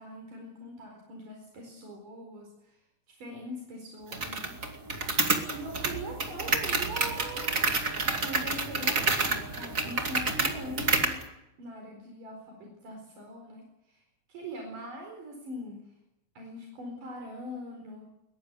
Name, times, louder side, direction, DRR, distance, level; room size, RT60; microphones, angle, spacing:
voice 1, 0.0-2.8 3.1-4.6 5.5-7.8 8.2-11.3 11.6-14.0 14.3-15.9 16.4-18.1, equal, 75° right, 2 dB, 6.1 m, -42 dB
sound 1, 4.1-11.2, right 3 dB, 25° right, 2.5 m, -29 dB
22.0 x 22.0 x 8.3 m, 0.88 s
omnidirectional pair, 3.8 m